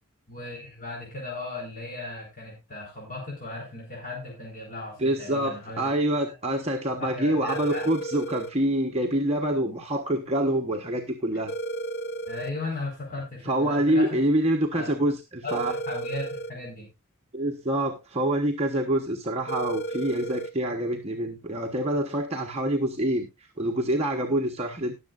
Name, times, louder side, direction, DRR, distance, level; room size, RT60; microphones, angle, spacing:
voice 1, 0.3-5.9 7.0-7.8 12.3-14.2 14.7-14.9 15.4-16.9, left 2 dB, 40° left, -2 dB, 4.4 m, -36 dB
voice 2, 5.0-11.5 13.4-15.7 17.3-24.9, right 1 dB, 30° right, 2 dB, 1.1 m, -26 dB
sound 1, 7.5-8.5 11.5-12.5 15.5-16.5 19.5-20.5, right 2 dB, 55° left, 0.7 m, -33 dB
19.5 x 7.5 x 2.5 m, 0.24 s
head